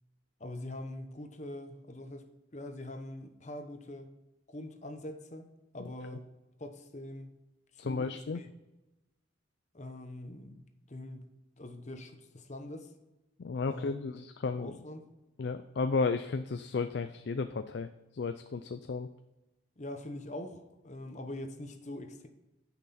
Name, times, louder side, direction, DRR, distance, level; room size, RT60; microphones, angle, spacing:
voice 1, 0.4-2.3 2.5-4.1 4.5-5.5 5.7-6.3 6.6-7.3 7.7-8.5 9.7-10.6 10.9-11.3 11.6-12.9 13.6-14.0 14.5-15.1 19.8-22.3, left 1 dB, 35° left, 6 dB, 0.9 m, -43 dB
voice 2, 7.8-8.4 13.4-14.7 15.4-19.1, left 4 dB, 55° left, 9 dB, 0.4 m, -33 dB
9.1 x 5.9 x 4.2 m, 1.0 s
head